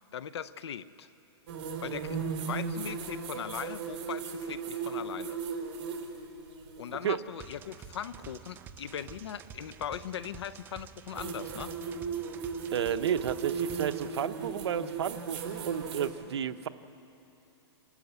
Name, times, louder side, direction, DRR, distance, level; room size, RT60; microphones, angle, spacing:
voice 1, 0.1-1.1 1.8-5.4 6.8-11.7, left 9 dB, 75° left, 15 dB, 0.7 m, -39 dB
sound 1, 1.5-7.0 9.0-9.1 11.1-16.1, right 5 dB, 45° right, 3.6 m, -37 dB
sound 2, 7.4-14.1, right 7 dB, 15° right, 0.5 m, -49 dB
voice 2, 12.7-16.7, right 9 dB, 75° right, 11 dB, 0.8 m, -32 dB
28.0 x 13.0 x 8.2 m, 2.9 s
hypercardioid pair, 160°, 14 cm